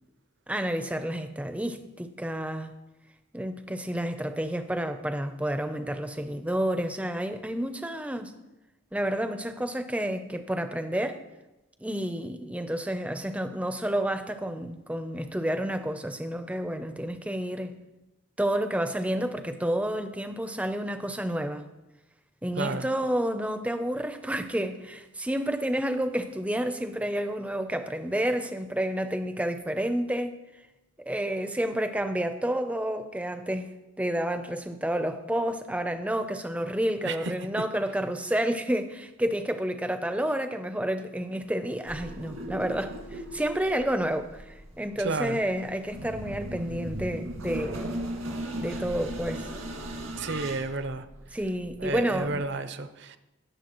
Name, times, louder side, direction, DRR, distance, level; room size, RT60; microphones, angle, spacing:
voice 1, 0.5-2.7 3.3-8.3 8.9-11.2 11.8-17.7 18.4-21.7 22.4-30.4 31.1-33.7 34.0-47.8 48.4-49.5 51.3-52.4, right 1 dB, 5° right, 8 dB, 0.5 m, -30 dB
voice 2, 22.6-22.9 37.0-37.3 45.0-45.4 50.2-51.0 51.8-53.2, right 3 dB, 55° right, 10 dB, 0.6 m, -31 dB
sound 1, 41.9-52.4, right 1 dB, 80° right, 1.9 m, -38 dB
19.0 x 7.0 x 3.0 m, 1.0 s
head